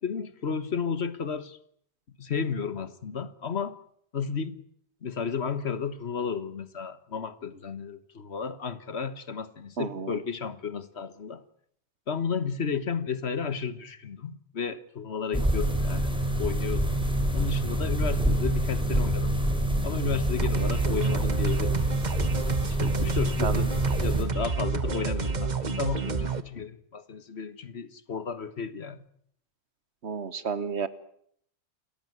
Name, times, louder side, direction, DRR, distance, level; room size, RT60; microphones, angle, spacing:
voice 1, 0.0-1.6 2.2-3.8 4.1-4.6 5.0-11.4 12.1-17.0 17.3-19.3 19.8-21.9 22.8-23.7 24.0-29.0, left 6 dB, 70° left, 1.6 m, -33 dB
voice 2, 9.8-10.2 15.4-15.5 23.4-23.7 30.0-30.9, right 5 dB, 75° right, 1.6 m, -31 dB
sound 1, 15.3-24.3, right 1 dB, 5° right, 4.2 m, -27 dB
sound 2, 20.4-26.4, right 5 dB, 40° right, 1.2 m, -29 dB
29.0 x 14.0 x 9.6 m
omnidirectional pair, 1.1 m